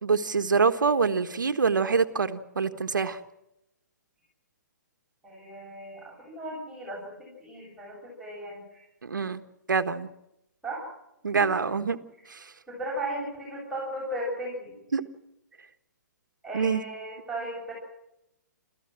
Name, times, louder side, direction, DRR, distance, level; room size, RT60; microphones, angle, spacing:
voice 1, 0.0-3.2 9.0-9.4 9.7-10.1 11.2-12.0 12.3-12.5 14.9-15.0 16.5-16.8, right 5 dB, 85° right, 8 dB, 1.4 m, -25 dB
voice 2, 5.2-8.8 10.6-10.9 11.3-11.6 12.7-14.7 16.4-17.7, right 1 dB, 5° right, -6 dB, 7.7 m, -36 dB
27.5 x 14.5 x 7.6 m, 0.86 s
hypercardioid pair, 130°, 10 cm